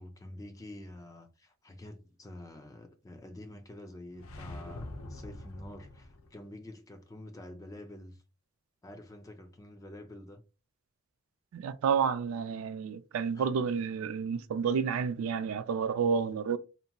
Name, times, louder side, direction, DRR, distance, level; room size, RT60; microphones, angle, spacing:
voice 1, 0.0-8.2 8.8-10.4 13.3-13.5, left 1 dB, 15° left, 0.3 m, -47 dB
sound 1, 4.1-6.4, left 2 dB, 85° left, 0.5 m, -44 dB
voice 2, 11.5-16.6, right 6 dB, 75° right, 0.3 m, -30 dB
2.8 x 2.6 x 2.2 m
head